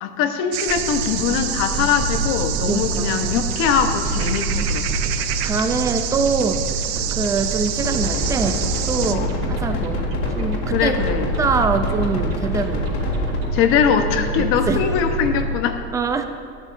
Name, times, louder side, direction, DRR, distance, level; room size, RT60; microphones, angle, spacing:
voice 1, 0.0-4.8 9.1-9.3 10.7-11.3 13.5-15.8, left 7 dB, 45° left, 7 dB, 0.9 m, -22 dB
sound 1, 0.5-9.2, right 11 dB, 75° right, 0.8 m, -28 dB
sound 2, 0.7-15.5, right 1 dB, 30° right, 2.4 m, -27 dB
voice 2, 2.7-3.2 5.4-6.6 7.2-10.0 10.3-10.9 11.4-12.8 14.4-14.8 15.9-16.2, right 5 dB, 10° right, 7 dB, 0.3 m, -24 dB
sound 3, 7.8-13.4, left 2 dB, 80° left, 2.4 m, -27 dB
15.5 x 12.0 x 2.5 m, 2.4 s
supercardioid pair, 155°, 32 cm